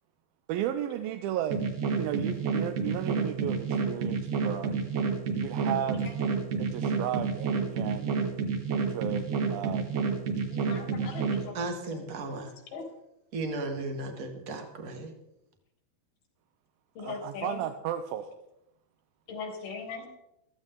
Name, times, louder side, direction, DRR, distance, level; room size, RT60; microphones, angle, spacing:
voice 1, 0.5-1.6 2.0-4.9 5.3-6.0 6.6-8.2 8.7-10.1 17.0-18.3, right 10 dB, 85° right, 7 dB, 2.5 m, -34 dB
sound 1, 1.5-11.4, right 5 dB, 55° right, 2.4 m, -29 dB
voice 2, 10.5-11.6 11.9-12.4 12.7-12.8 17.0-17.6 19.3-20.1, left 5 dB, 80° left, 2 dB, 4.6 m, -40 dB
voice 3, 11.5-12.5 13.3-15.1, right 2 dB, 35° right, 4 dB, 1.4 m, -35 dB
16.0 x 14.0 x 3.7 m, 0.84 s
omnidirectional pair, 4.3 m